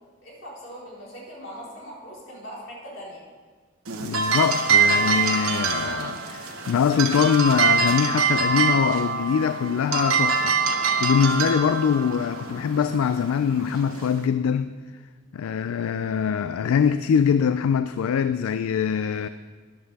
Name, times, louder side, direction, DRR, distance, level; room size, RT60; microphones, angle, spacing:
voice 1, 0.2-3.2, equal, 65° left, 4.1 m, -40 dB
sound 1, 3.9-14.3, right 5 dB, 85° right, 1.2 m, -24 dB
voice 2, 4.0-10.5 11.0-14.7 15.3-19.3, left 7 dB, 80° left, 0.3 m, -23 dB
13.5 x 11.0 x 3.5 m
head